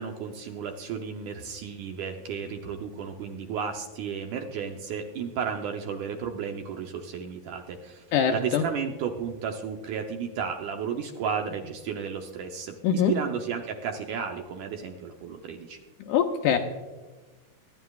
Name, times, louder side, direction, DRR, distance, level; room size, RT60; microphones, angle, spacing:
voice 1, 0.0-8.0 8.3-15.8, right 6 dB, 75° right, 4 dB, 1.9 m, -33 dB
voice 2, 8.1-8.6 12.8-13.1 16.0-16.6, left 8 dB, 80° left, 4 dB, 2.0 m, -23 dB
24.0 x 10.5 x 2.4 m, 1.3 s
omnidirectional pair, 4.2 m